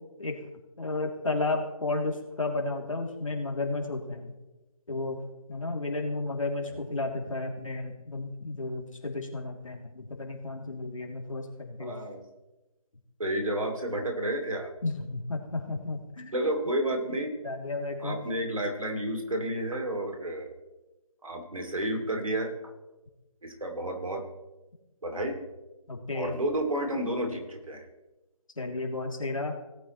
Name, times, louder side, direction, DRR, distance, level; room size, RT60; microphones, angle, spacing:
voice 1, 0.8-4.3 4.9-5.2 5.5-11.9 14.8-16.3 17.4-18.2 25.9-26.3 28.6-29.6, left 2 dB, 60° left, 2 dB, 2.7 m, -33 dB
voice 2, 11.8-12.2 13.2-14.7 16.3-17.3 18.0-20.5 21.2-22.5 23.4-24.2 25.0-25.4 26.1-27.9, right 1 dB, 65° right, 4 dB, 2.6 m, -31 dB
18.0 x 8.5 x 3.1 m, 1.0 s
figure-of-eight pair, 165°, 19 cm